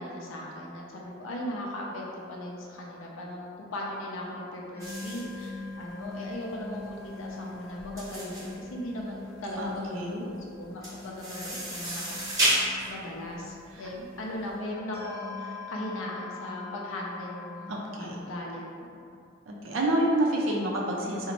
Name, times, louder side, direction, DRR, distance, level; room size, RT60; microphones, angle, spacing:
voice 1, 0.0-12.5 12.9-17.7 18.0-19.1, left 1 dB, 85° left, -3 dB, 0.5 m, -38 dB
sound 1, 4.7-17.8, left 3 dB, 30° left, 0.4 m, -43 dB
sound 2, 4.8-14.4, right 1 dB, 15° right, 0.8 m, -33 dB
voice 2, 9.6-10.3 13.7-13.8 17.7-18.2 19.5-21.3, right 1 dB, 80° right, -2 dB, 0.5 m, -28 dB
3.9 x 2.1 x 2.9 m, 2.5 s
head